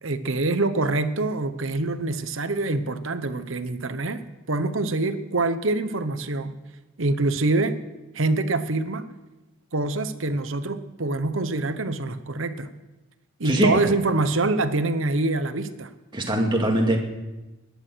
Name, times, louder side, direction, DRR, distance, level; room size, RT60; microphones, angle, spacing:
voice 1, 0.0-4.2 4.5-6.6 7.0-7.8 8.1-9.1 9.7-12.7 13.4-15.9, right 2 dB, 70° right, 11 dB, 1.0 m, -25 dB
voice 2, 13.4-13.9 16.1-17.0, right 1 dB, 25° right, 1 dB, 2.3 m, -22 dB
20.5 x 10.5 x 6.4 m, 1.1 s
head